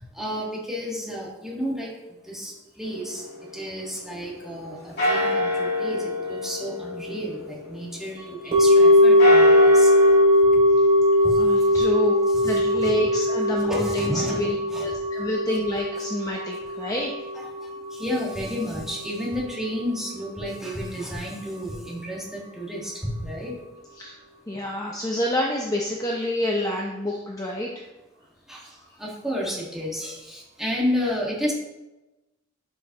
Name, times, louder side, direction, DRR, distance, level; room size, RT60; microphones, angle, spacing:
voice 1, 0.1-1.9 2.2-9.9 11.2-11.9 12.3-12.6 13.6-14.4 14.7-14.9 17.4-23.5 28.5-31.5, equal, ahead, -5 dB, 1.8 m, -31 dB
sound 1, 2.8-4.6 5.0-8.5 9.0-10.2, left 1 dB, 55° left, 3.0 m, -28 dB
sound 2, 8.5-18.8 19.1-19.2, left 1 dB, 35° right, 2.4 m, -19 dB
voice 2, 11.4-12.1 12.4-17.1 24.0-24.2 24.5-27.7 28.6-28.7, left 1 dB, 15° left, -2 dB, 0.7 m, -28 dB
11.5 x 5.2 x 3.0 m, 1.0 s
head